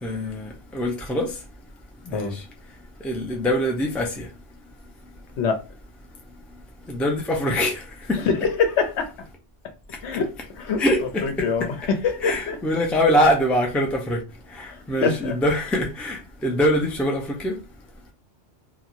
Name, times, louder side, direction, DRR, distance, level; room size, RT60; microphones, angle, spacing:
voice 1, 0.0-1.3 2.1-2.4 3.0-4.3 6.9-7.8 8.1-8.2 10.8-11.7 12.2-14.2 14.6-17.6, equal, ahead, 0.3 m, -23 dB
voice 2, 8.2-9.1 10.0-12.6 14.7-15.4, left 5 dB, 80° left, 0.9 m, -25 dB
2.9 x 2.2 x 2.5 m
omnidirectional pair, 1.1 m